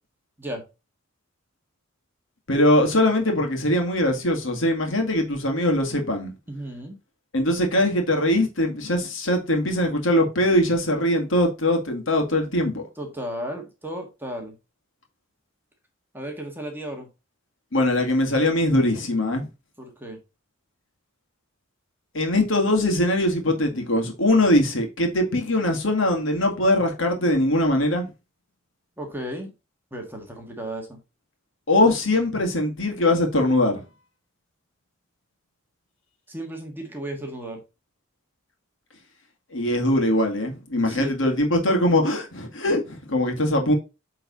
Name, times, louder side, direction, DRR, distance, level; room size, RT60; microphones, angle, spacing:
voice 1, 2.5-6.3 7.3-12.8 17.7-19.5 22.1-28.1 31.7-33.8 39.5-43.7, left 1 dB, 70° left, 2.0 m, -21 dB
voice 2, 6.5-7.0 12.9-14.6 16.1-17.1 19.8-20.2 29.0-29.5 29.9-31.0 36.3-37.6 40.8-41.2, right 1 dB, 10° right, 1.6 m, -34 dB
8.4 x 3.9 x 4.2 m
head